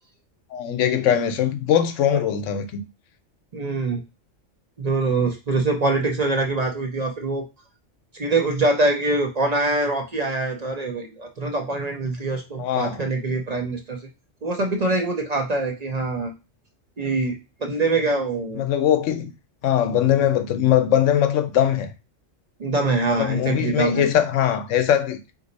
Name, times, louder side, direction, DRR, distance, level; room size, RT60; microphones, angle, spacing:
voice 1, 0.5-2.8 12.6-13.0 18.5-19.3 19.6-21.9 23.1-25.2, left 10 dB, 85° left, 1.0 m, -21 dB
voice 2, 3.5-4.0 4.8-7.4 8.1-14.0 14.4-16.3 17.0-17.4 17.6-18.6 22.6-24.1, right 2 dB, 40° right, 0.7 m, -24 dB
4.0 x 2.6 x 3.9 m
omnidirectional pair, 1.2 m